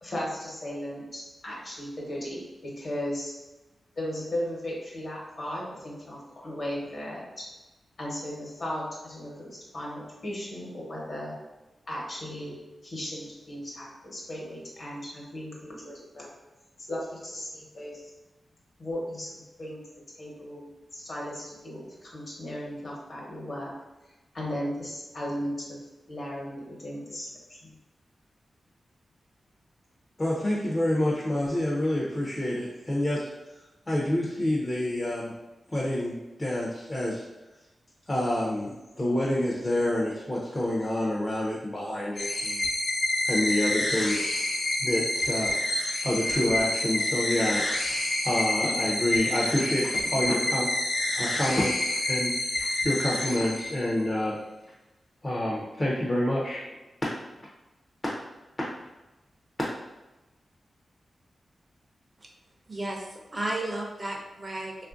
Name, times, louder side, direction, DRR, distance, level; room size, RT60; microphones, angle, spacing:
voice 1, 0.0-2.4 2.8-3.3 4.0-6.2 6.4-7.5 8.0-11.3 11.9-12.6 12.8-16.3 16.8-18.0 18.8-19.8 20.2-20.7 20.9-23.7 24.3-25.8 26.1-27.7, equal, 55° left, -4 dB, 1.0 m, -36 dB
voice 2, 30.2-33.3 33.9-35.3 35.7-37.3 38.1-42.6 43.2-45.6 46.0-47.6 48.2-50.7 51.1-54.4 55.2-56.6, left 1 dB, 25° left, -5 dB, 0.5 m, -28 dB
sound 1, 42.2-54.1, left 1 dB, 75° left, 0.6 m, -28 dB
voice 3, 62.7-64.9, right 1 dB, 35° right, 0 dB, 0.5 m, -33 dB
3.1 x 2.4 x 2.5 m, 1.1 s
wide cardioid pair, 105°, 0 cm